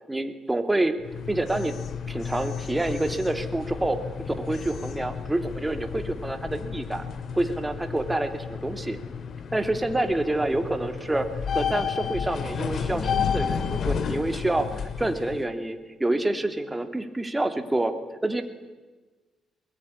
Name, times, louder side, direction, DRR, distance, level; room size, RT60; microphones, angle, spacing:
voice 1, 0.1-0.9 1.3-1.7 2.1-4.0 4.3-7.0 7.3-9.0 9.5-11.3 11.5-14.7 15.0-17.9 18.2-18.4, right 2 dB, 15° right, 7 dB, 2.8 m, -27 dB
sound 1, 1.0-15.4, left 7 dB, 60° left, 2.3 m, -32 dB
22.0 x 21.5 x 10.0 m, 1.2 s
cardioid pair, 90°, 0 cm